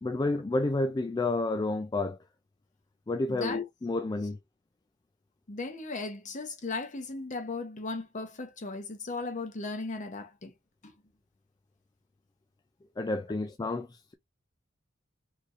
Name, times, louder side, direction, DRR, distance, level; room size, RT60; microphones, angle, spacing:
voice 1, 0.0-2.2 3.1-4.4 13.0-14.1, left 2 dB, 20° left, 0.3 m, -30 dB
voice 2, 3.3-3.6 5.5-10.5 10.8-11.0, left 3 dB, 40° left, 0.9 m, -37 dB
4.0 x 3.0 x 2.4 m
head